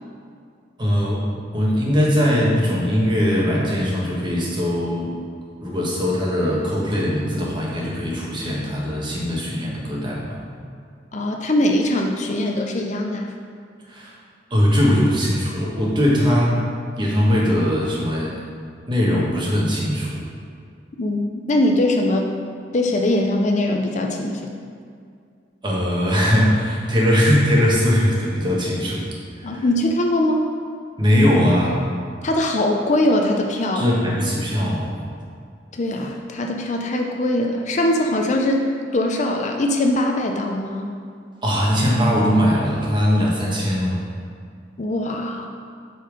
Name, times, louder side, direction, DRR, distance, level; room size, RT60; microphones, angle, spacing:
voice 1, 0.8-1.2 1.5-5.1 5.6-10.4 13.9-14.1 14.5-16.6 17.0-18.3 18.9-20.2 25.6-29.1 29.4-29.6 31.0-31.8 33.7-35.0 41.4-44.0, equal, 25° right, -4 dB, 1.4 m, -20 dB
voice 2, 11.1-13.3 21.0-22.3 22.7-24.5 29.4-30.4 32.2-33.9 35.7-40.9 44.8-45.5, left 1 dB, 40° left, 2 dB, 0.5 m, -21 dB
8.3 x 4.3 x 5.2 m, 2.3 s
head